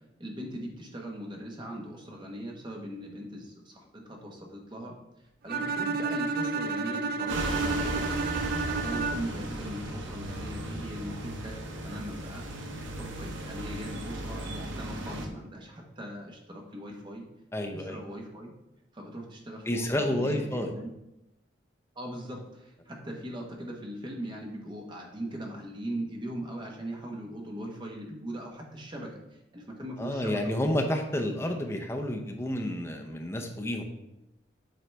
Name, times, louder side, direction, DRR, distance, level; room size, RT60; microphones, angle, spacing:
voice 1, 0.2-4.9 5.4-8.1 8.7-12.4 12.8-17.2 17.7-18.5 18.9-20.9 21.9-29.1 29.5-30.7, right 1 dB, 25° right, 0 dB, 1.0 m, -40 dB
Bowed string instrument, 5.5-9.5, right 4 dB, 55° right, 0.3 m, -31 dB
sound 1, 7.3-15.3, right 1 dB, 85° right, 0.8 m, -36 dB
voice 2, 17.5-18.0 19.7-20.7 30.0-33.8, left 1 dB, 15° left, 4 dB, 0.6 m, -30 dB
7.7 x 3.9 x 3.3 m, 0.91 s
head